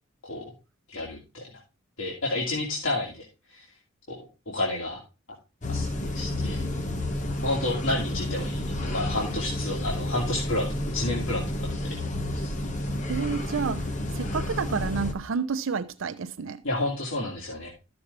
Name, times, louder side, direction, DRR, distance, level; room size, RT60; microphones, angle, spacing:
voice 1, 0.9-1.6 2.0-3.7 4.1-4.2 4.5-5.0 5.7-6.7 7.4-12.0 12.3-12.5 16.6-17.7, left 2 dB, 90° left, 2.6 m, -31 dB
sound 1, 5.6-15.1, left 1 dB, 40° left, 1.5 m, -30 dB
voice 2, 13.1-16.6, right 5 dB, 85° right, 0.6 m, -30 dB
13.5 x 6.9 x 3.3 m
head